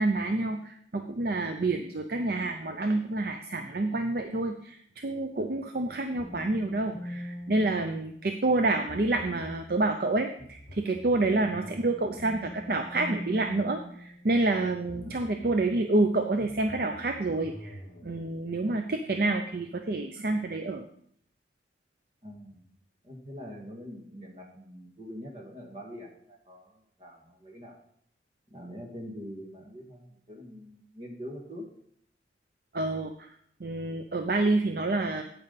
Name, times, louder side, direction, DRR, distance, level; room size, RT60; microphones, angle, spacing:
voice 1, 0.0-20.9 32.7-33.3 33.6-35.2, right 2 dB, 55° right, 6 dB, 0.5 m, -28 dB
sound 1, 6.2-8.4 8.9-9.7 10.4-14.5 14.9-15.7 16.4-18.2, equal, 40° left, 3.2 m, -44 dB
voice 2, 22.2-22.6 23.0-27.8 28.5-31.7, equal, 35° right, 0 dB, 2.0 m, -44 dB
8.9 x 8.8 x 4.1 m, 0.67 s
head